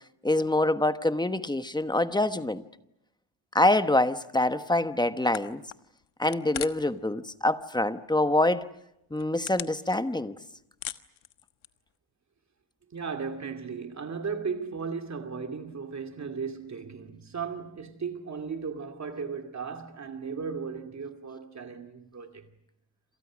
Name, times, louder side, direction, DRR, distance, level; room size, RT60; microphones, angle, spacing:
voice 1, 0.2-2.6 3.5-5.6 6.2-8.6 9.1-10.4, left 1 dB, 10° left, 1.0 m, -25 dB
sound 1, 5.3-7.0 7.3-7.9 8.3-8.4 8.9-10.4 10.6-11.9, left 12 dB, 75° left, 1.4 m, -39 dB
voice 2, 12.9-22.5, right 5 dB, 35° right, 2.4 m, -36 dB
28.0 x 27.5 x 6.3 m
cardioid pair, 140°, 48 cm